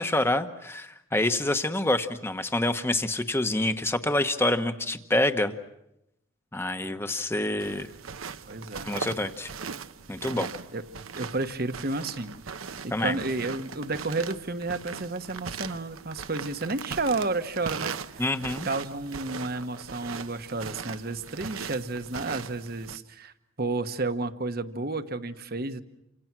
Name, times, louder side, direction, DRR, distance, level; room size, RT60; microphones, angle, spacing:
voice 1, 0.0-5.5 6.5-7.9 8.8-9.5 10.1-10.5 12.9-13.2 18.2-18.7, left 1 dB, 10° left, 9 dB, 1.1 m, -27 dB
sound 1, 7.6-23.0, right 5 dB, 75° right, 0.9 m, -39 dB
voice 2, 8.5-8.9 10.7-10.8 11.1-12.4 12.8-18.2 18.6-23.3 23.6-25.8, right 3 dB, 45° right, 10 dB, 1.1 m, -31 dB
29.0 x 26.5 x 6.1 m, 0.83 s
head